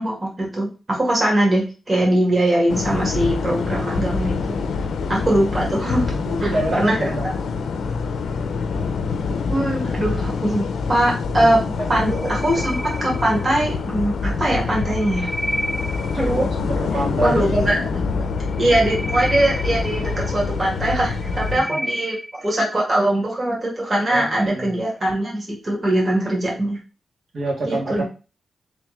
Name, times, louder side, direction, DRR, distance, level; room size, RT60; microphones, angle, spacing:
voice 1, 0.0-4.6 5.1-6.1 6.4-7.2 9.5-11.6 11.9-15.3 16.1-16.5 16.9-18.0 18.6-26.8 27.6-28.0, right 1 dB, 35° right, -3 dB, 1.7 m, -21 dB
sound 1, 2.7-21.6, left 4 dB, 85° left, 0.5 m, -25 dB
voice 2, 6.1-7.3 11.3-11.5 11.7-11.9 16.2-17.4 21.5-21.6 24.1-24.8 27.3-28.0, right 1 dB, 70° right, -1 dB, 1.6 m, -26 dB
sound 2, 12.1-13.7 14.6-16.5 18.4-20.5 21.0-22.6, equal, 15° right, 0.4 m, -31 dB
3.6 x 3.3 x 3.2 m, 0.33 s
cardioid pair, 95°, 0 cm